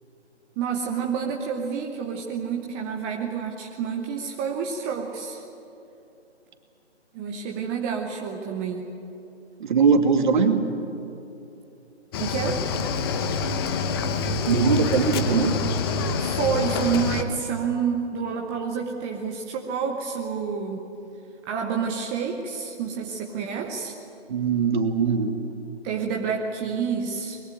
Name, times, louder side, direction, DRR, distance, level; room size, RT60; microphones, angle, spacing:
voice 1, 0.6-5.4 7.1-9.0 12.2-12.6 16.2-20.9 21.5-23.9 25.8-27.4, right 6 dB, 10° right, 1 dB, 0.7 m, -29 dB
voice 2, 9.6-10.7 14.5-15.6 24.3-25.3, right 5 dB, 45° right, 5 dB, 2.4 m, -21 dB
Cricket / Waves surf, 12.1-17.2, left 4 dB, 20° left, 1.0 m, -26 dB
23.5 x 21.5 x 9.0 m, 2.8 s
figure-of-eight pair, 145°, 35 cm